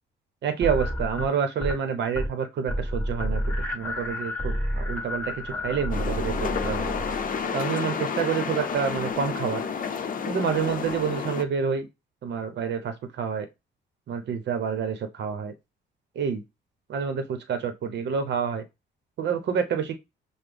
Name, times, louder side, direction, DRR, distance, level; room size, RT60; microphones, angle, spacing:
voice 1, 0.4-3.4 3.7-6.9 7.5-9.6 10.3-11.9 12.2-13.5 14.1-15.5 16.2-16.4 16.9-18.6 19.2-20.0, right 7 dB, 60° right, 0.8 m, -28 dB
sound 1, 0.6-1.8 2.1-2.4 2.7-7.4, equal, 10° left, 1.5 m, -30 dB
sound 2, 5.9-11.4, left 6 dB, 45° left, 0.7 m, -30 dB
5.9 x 2.1 x 3.4 m
cardioid pair, 90°, 20 cm